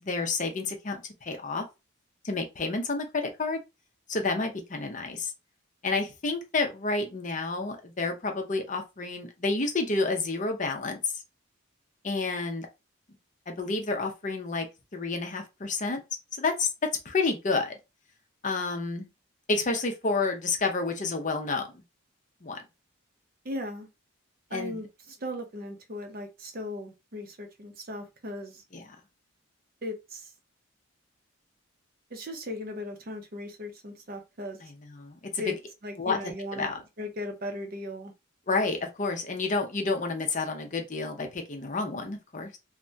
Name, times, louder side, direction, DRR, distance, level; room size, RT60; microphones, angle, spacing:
voice 1, 0.0-1.6 2.2-3.6 4.1-5.3 5.8-11.2 12.0-12.7 13.5-14.7 14.9-16.0 16.3-16.7 17.0-17.7 18.4-19.1 19.5-21.7 22.4-22.6 24.5-24.8 28.7-29.0 34.6-35.6 36.0-36.8 38.5-42.6, left 3 dB, 35° left, 0.6 m, -30 dB
voice 2, 23.4-23.9 24.5-28.6 29.8-30.3 32.1-34.6 35.4-35.6 35.8-36.7 37.0-38.1, left 1 dB, 45° right, 0.6 m, -37 dB
3.3 x 2.1 x 2.6 m
head